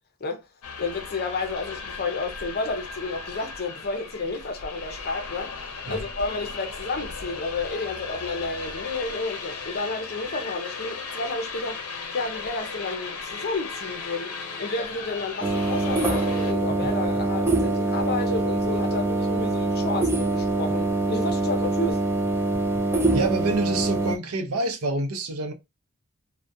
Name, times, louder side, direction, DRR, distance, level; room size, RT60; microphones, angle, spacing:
sound 1, 0.6-16.5, left 4 dB, 90° left, 0.6 m, -36 dB
voice 1, 0.8-5.5 5.9-11.8 12.1-22.0, left 3 dB, 45° left, 0.6 m, -31 dB
sound 2, 15.4-24.2, right 2 dB, 10° right, 0.3 m, -24 dB
voice 2, 23.1-25.5, right 2 dB, 75° right, 0.6 m, -27 dB
2.3 x 2.2 x 2.6 m
head